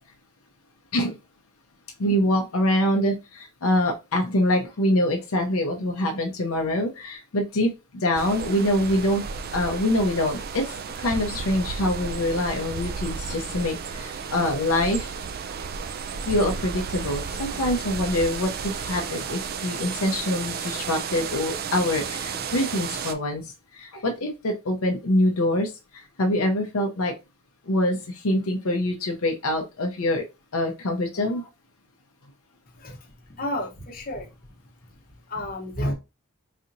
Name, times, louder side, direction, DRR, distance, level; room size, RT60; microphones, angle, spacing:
voice 1, 2.0-9.2 9.5-15.1 16.3-27.1 27.7-30.2 30.5-31.5, left 1 dB, 75° left, 3 dB, 0.6 m, -25 dB
sound 1, 8.1-23.1, right 6 dB, 45° right, 0.3 m, -33 dB
voice 2, 32.7-34.3 34.9-35.9, left 1 dB, 40° left, 1 dB, 0.9 m, -32 dB
4.1 x 2.8 x 2.5 m, 0.26 s
head